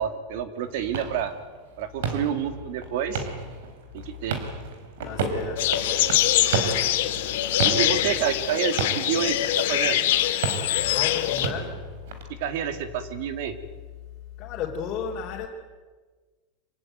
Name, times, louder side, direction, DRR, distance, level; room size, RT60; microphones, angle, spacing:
voice 1, 0.0-1.3 1.8-3.3 3.9-4.4 7.6-10.0 12.4-13.6, right 9 dB, 60° right, 10 dB, 2.3 m, -28 dB
sound 1, 0.6-12.2, right 5 dB, 80° right, 4.6 m, -33 dB
voice 2, 5.0-6.3 10.9-11.9 14.4-15.5, left 7 dB, 30° left, -4 dB, 3.5 m, -33 dB
sound 2, 5.6-11.5, left 13 dB, 70° left, 2.2 m, -24 dB
26.0 x 17.0 x 9.3 m, 1.4 s
supercardioid pair, 170°, 0 cm